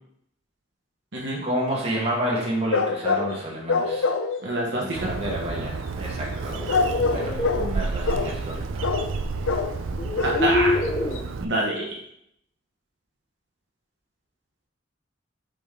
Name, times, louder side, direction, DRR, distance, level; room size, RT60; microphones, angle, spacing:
voice 1, 1.4-4.1 4.8-6.7 7.1-8.9, equal, 30° right, -3 dB, 1.6 m, -30 dB
sound 1, 2.7-3.4 3.7-4.4 6.7-7.7 8.1-8.3 8.8-9.1 9.5-9.7 10.2-10.5 10.8-10.9 11.2-11.3, left 4 dB, 85° left, 0.5 m, -24 dB
voice 2, 4.4-5.1 10.2-10.8 11.4-11.9, right 1 dB, 65° right, -3 dB, 1.1 m, -26 dB
Bird, 5.0-11.5, right 4 dB, 85° right, 0.5 m, -31 dB
sound 2, 6.3-7.6 9.1-9.2 9.9-11.2, left 2 dB, 30° left, 0.6 m, -27 dB
5.2 x 5.0 x 3.8 m, 0.74 s
head